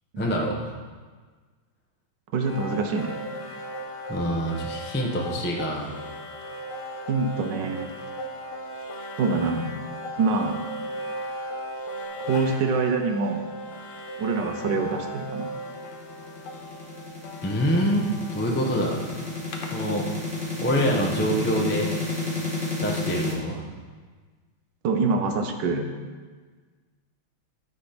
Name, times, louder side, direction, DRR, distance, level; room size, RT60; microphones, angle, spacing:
voice 1, 0.2-0.7 4.1-5.9 17.4-19.0 19.7-20.1 20.6-21.9 22.8-23.6, equal, 15° left, -1 dB, 0.3 m, -25 dB
voice 2, 2.3-3.2 7.1-8.0 9.2-9.7 10.2-10.5 12.3-13.4 14.2-15.5 24.8-25.9, right 4 dB, 65° right, 5 dB, 1.3 m, -25 dB
sound 1, 2.4-20.4, right 1 dB, 90° left, 1.8 m, -37 dB
sound 2, 15.2-23.3, left 3 dB, 5° right, 1.3 m, -32 dB
11.5 x 4.1 x 5.9 m, 1.4 s
omnidirectional pair, 2.3 m